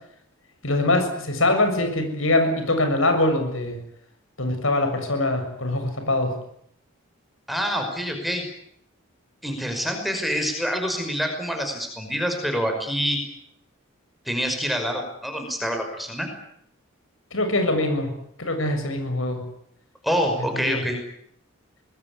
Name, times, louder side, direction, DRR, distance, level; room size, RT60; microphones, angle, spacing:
voice 1, 0.6-3.8 4.4-6.4 17.3-18.1 18.4-19.4 20.5-20.8, left 2 dB, 75° left, 7 dB, 7.0 m, -23 dB
voice 2, 7.5-8.4 9.4-13.2 14.3-16.3 20.0-21.0, equal, ahead, 4 dB, 5.6 m, -26 dB
25.5 x 21.0 x 9.8 m, 0.70 s
head